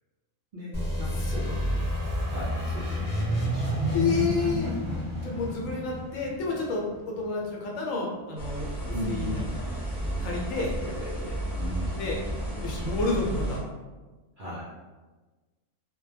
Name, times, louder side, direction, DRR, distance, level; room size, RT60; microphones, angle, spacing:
voice 1, 0.5-1.8 2.3-4.1 8.9-9.5 10.5-12.0 14.4-14.6, equal, 65° right, -7 dB, 0.5 m, -38 dB
sound 1, 0.7-7.3, equal, 10° right, 0.9 m, -30 dB
voice 2, 3.9-4.7 5.2-8.7 9.0-9.4 10.2-10.7 12.0-12.2 12.6-13.6, left 4 dB, 75° left, -1 dB, 1.0 m, -30 dB
sound 2, 8.4-13.6, right 1 dB, 20° left, 0.8 m, -33 dB
2.2 x 2.2 x 3.1 m, 1.2 s
omnidirectional pair, 1.4 m